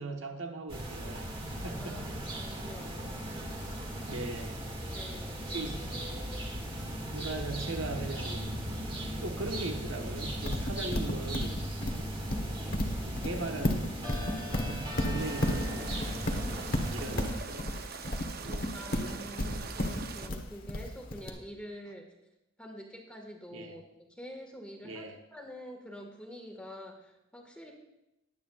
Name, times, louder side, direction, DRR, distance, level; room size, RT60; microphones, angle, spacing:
voice 1, 0.0-1.3 1.6-2.0 4.1-4.6 5.5-5.9 7.1-8.5 9.2-11.6 13.0-13.9 14.6-16.3 16.9-17.7 18.4-19.8 23.5-23.7 24.8-25.2, right 2 dB, 75° right, 3 dB, 1.2 m, -39 dB
sound 1, 0.7-17.4, equal, 30° right, 1.9 m, -37 dB
voice 2, 1.8-3.9 4.9-5.8 16.9-17.5 18.7-22.1 22.6-23.8 24.1-27.7, equal, 5° left, 1 dB, 1.7 m, -47 dB
Livestock farm animals working animals, 10.5-21.3, left 1 dB, 50° left, 1.2 m, -32 dB
sound 2, 15.2-20.3, right 5 dB, 50° right, 0.7 m, -43 dB
21.0 x 8.6 x 2.4 m, 0.88 s
head